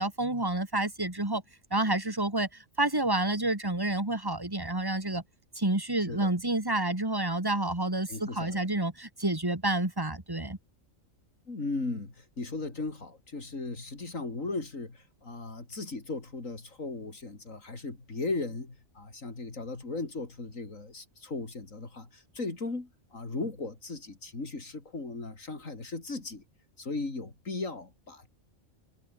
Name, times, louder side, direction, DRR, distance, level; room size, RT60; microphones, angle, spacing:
voice 1, 0.0-1.4 1.7-5.2 5.6-10.6, right 2 dB, 15° right, 2.6 m, -29 dB
voice 2, 8.1-8.7 11.5-26.4 26.8-28.3, left 3 dB, 90° left, 4.1 m, -37 dB
omnidirectional pair, 1.3 m